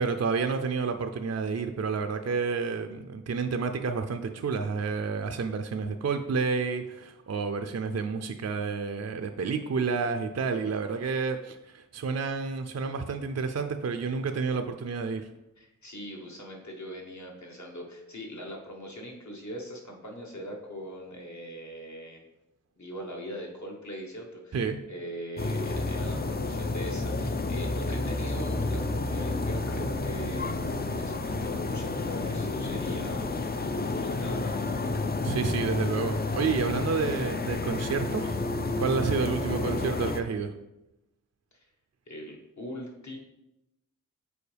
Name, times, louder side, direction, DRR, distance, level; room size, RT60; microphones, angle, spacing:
voice 1, 0.0-15.3 24.5-24.8 35.2-40.6, right 5 dB, 50° right, 6 dB, 0.5 m, -30 dB
voice 2, 15.6-22.2 22.7-24.6 24.9-33.5 33.9-34.6 41.5-41.7 42.1-43.2, equal, 60° left, 0 dB, 1.4 m, -41 dB
sound 1, 25.4-40.2, left 2 dB, 30° left, 0.5 m, -30 dB
6.9 x 4.5 x 3.4 m, 0.92 s
wide cardioid pair, 45°, 33 cm